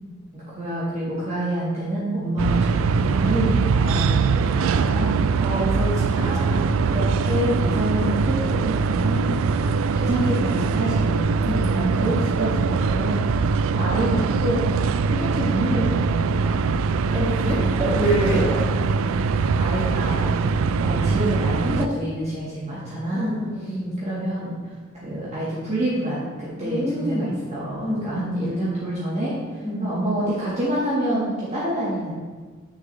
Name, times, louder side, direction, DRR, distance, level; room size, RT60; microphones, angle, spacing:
voice 1, 0.3-5.2 6.1-9.7 10.0-11.4 11.7-13.3 13.7-14.7 15.1-16.7 18.5-18.6 19.3-23.4 24.0-24.5 25.0-32.1, right 1 dB, 30° right, -9 dB, 1.7 m, -27 dB
sound 1, 2.4-21.9, right 4 dB, 70° right, 0.3 m, -22 dB
voice 2, 5.4-6.6 11.4-12.1 17.1-18.5 23.1-24.0 26.6-27.4 27.8-28.5 29.6-30.1, right 1 dB, 15° right, -7 dB, 2.3 m, -26 dB
9.8 x 6.5 x 3.3 m, 1.5 s
head